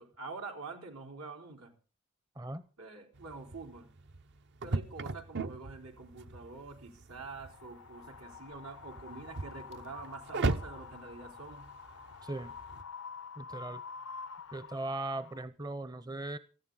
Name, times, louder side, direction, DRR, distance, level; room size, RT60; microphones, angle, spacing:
voice 1, 0.0-1.7 2.8-3.9 4.6-11.7, right 3 dB, 85° right, 3 dB, 3.8 m, -46 dB
sound 1, 3.1-12.8, right 2 dB, 55° right, 0.8 m, -39 dB
Wind, 7.3-15.4, left 5 dB, 90° left, 0.7 m, -48 dB
voice 2, 12.2-12.6 13.4-13.8 14.5-16.4, right 2 dB, 20° right, 14 dB, 0.6 m, -38 dB
18.5 x 14.5 x 3.9 m, 0.36 s
head